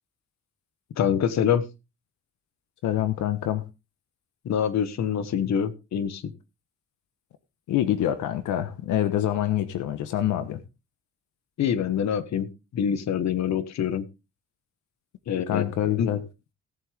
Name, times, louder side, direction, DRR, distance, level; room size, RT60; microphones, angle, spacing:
voice 1, 1.0-1.6 4.4-6.3 11.6-14.1 15.3-15.6 16.0-16.1, left 8 dB, 65° left, 14 dB, 1.3 m, -25 dB
voice 2, 2.8-3.6 7.7-10.6 15.5-16.2, left 11 dB, 85° left, 11 dB, 1.1 m, -26 dB
17.5 x 7.5 x 3.5 m, 0.27 s
cardioid pair, 90°, 30 cm